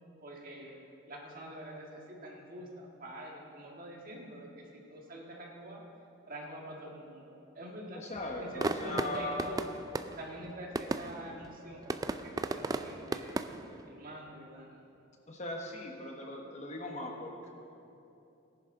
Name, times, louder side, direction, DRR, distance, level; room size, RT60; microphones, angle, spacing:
voice 1, 0.2-0.7 1.1-5.8 6.3-8.0 8.4-9.6 10.2-13.3 13.8-14.8, right 1 dB, 45° right, -1 dB, 1.8 m, -46 dB
voice 2, 7.9-9.5 15.3-17.5, left 1 dB, 35° left, 1 dB, 1.3 m, -39 dB
sound 1, 8.1-13.9, right 2 dB, 20° right, 0.3 m, -37 dB
18.0 x 10.5 x 3.9 m, 2.8 s
head